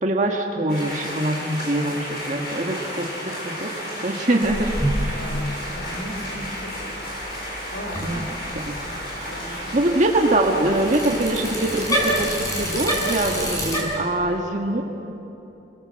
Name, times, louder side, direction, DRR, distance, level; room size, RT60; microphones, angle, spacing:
voice 1, 0.0-3.7 4.0-4.7 4.9-5.4 8.0-8.3 8.5-8.8 9.4-14.8, right 1 dB, 45° right, 1 dB, 1.7 m, -24 dB
sound 1, 0.7-13.4, equal, 60° left, 7.5 m, -33 dB
Bicycle, 4.4-13.8, equal, 20° left, 5.9 m, -29 dB
voice 2, 5.1-6.9 7.7-8.3 9.3-9.7, equal, 80° left, 4 dB, 3.9 m, -37 dB
29.5 x 22.0 x 7.6 m, 3.0 s
head